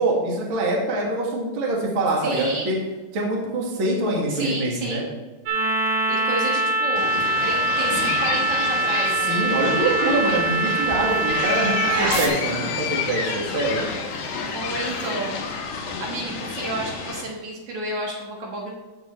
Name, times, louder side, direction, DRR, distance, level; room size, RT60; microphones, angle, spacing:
voice 1, 0.0-2.8 3.1-5.1 9.2-13.9, right 2 dB, 45° right, -2 dB, 2.0 m, -24 dB
voice 2, 2.2-2.7 4.3-5.1 6.1-9.4 11.9-12.7 14.3-15.4 15.7-18.7, right 2 dB, 60° right, -2 dB, 2.6 m, -31 dB
sound 1, 5.5-12.3, right 2 dB, 80° right, 2.8 m, -23 dB
sound 2, 7.0-17.2, left 4 dB, 65° left, 2.5 m, -31 dB
sound 3, 10.4-16.2, left 7 dB, 90° left, 2.9 m, -31 dB
15.0 x 5.5 x 3.2 m, 1.2 s
omnidirectional pair, 4.0 m